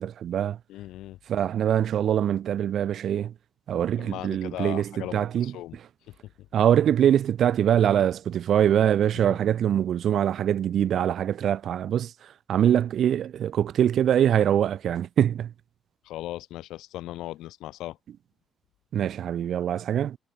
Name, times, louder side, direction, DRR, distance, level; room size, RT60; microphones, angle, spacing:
voice 1, 0.0-0.6 1.3-3.3 3.7-5.5 6.5-15.5 18.9-20.2, right 10 dB, 65° right, 0.4 m, -23 dB
voice 2, 0.7-1.2 4.0-5.8 6.1-6.5 9.1-9.4 16.0-18.0, left 15 dB, 90° left, 0.7 m, -38 dB
cardioid pair, 90°, 0 cm